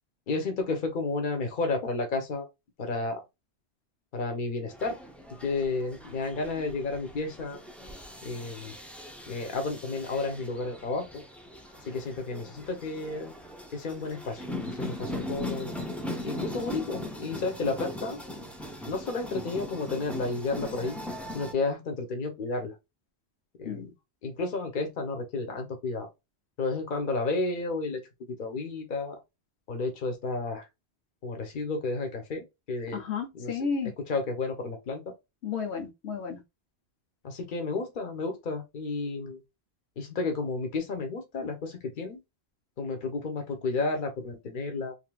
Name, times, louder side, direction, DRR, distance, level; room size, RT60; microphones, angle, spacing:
voice 1, 0.3-2.5 2.8-3.2 4.1-4.9 5.4-7.6 8.2-8.8 9.3-11.2 11.9-13.3 13.7-15.8 16.2-18.2 18.9-21.0 21.3-22.7 23.6-23.9 24.2-26.1 26.6-28.0 28.3-29.1 29.7-30.6 31.2-33.0 33.3-33.6 34.1-35.1 37.2-39.4 40.0-42.2 42.8-44.9, left 3 dB, 55° left, 1.0 m, -32 dB
sound 1, 4.7-21.5, left 1 dB, ahead, 0.3 m, -40 dB
voice 2, 32.9-33.9 35.4-36.4, left 6 dB, 90° left, 1.0 m, -32 dB
3.3 x 2.8 x 2.3 m
omnidirectional pair, 1.1 m